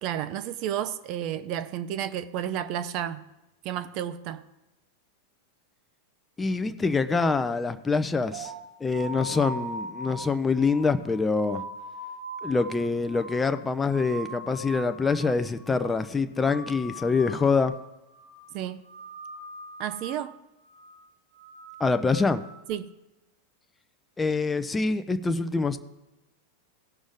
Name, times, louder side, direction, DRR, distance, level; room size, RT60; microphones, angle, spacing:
voice 1, 0.0-3.2 3.6-4.4 18.5-18.8 19.8-20.4 22.7-22.9, right 10 dB, 40° right, 0.5 m, -31 dB
voice 2, 6.4-8.5 8.8-11.6 12.4-17.7 21.8-22.4 24.2-25.8, left 4 dB, 10° left, 0.5 m, -25 dB
sound 1, 8.3-15.3 15.6-16.1 16.3-17.8 18.1-18.5 18.8-20.3 20.6-21.0 21.3-22.7, right 1 dB, 70° right, 2.5 m, -41 dB
17.0 x 6.2 x 3.6 m
figure-of-eight pair, 90°, 0 cm